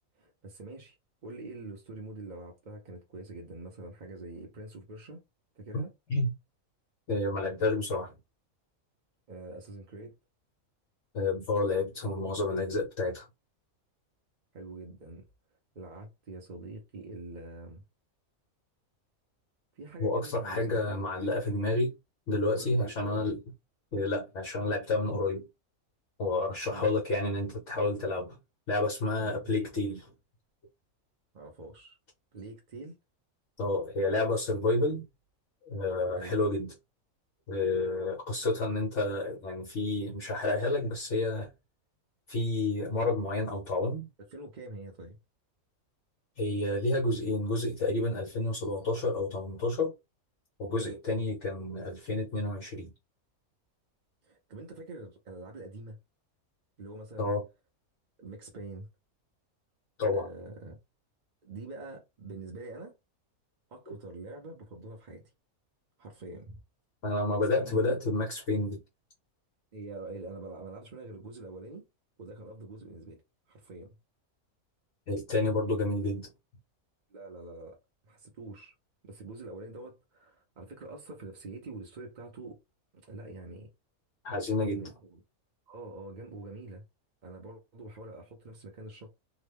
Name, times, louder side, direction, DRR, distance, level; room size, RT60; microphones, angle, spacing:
voice 1, 0.1-1.0 1.2-5.2 5.6-5.9 9.3-10.1 14.5-15.3 15.7-17.8 19.7-21.0 22.6-23.3 26.7-26.9 29.2-29.6 31.3-32.0 32.3-33.0 36.1-36.3 44.2-45.2 50.8-51.3 54.2-56.0 56.8-57.3 58.2-58.9 60.1-60.8 61.4-62.9 63.7-65.2 66.0-66.6 67.3-68.0 69.7-71.8 72.2-73.2 73.5-73.9 75.7-75.9 77.1-77.8 78.0-78.7 79.0-82.6 83.0-83.7 84.6-85.2 85.7-86.8 87.2-89.1, right 2 dB, 45° right, 0.6 m, -45 dB
voice 2, 7.1-8.1 11.1-13.3 20.0-21.9 22.3-23.4 23.9-25.5 26.2-28.4 28.7-30.1 33.6-35.0 35.6-36.7 37.5-41.5 42.3-44.1 46.4-49.9 50.6-52.9 57.2-57.4 60.0-60.3 63.9-64.0 67.0-68.8 75.1-76.3 84.2-84.9, left 2 dB, 55° left, 1.2 m, -30 dB
2.9 x 2.2 x 3.4 m
omnidirectional pair, 1.5 m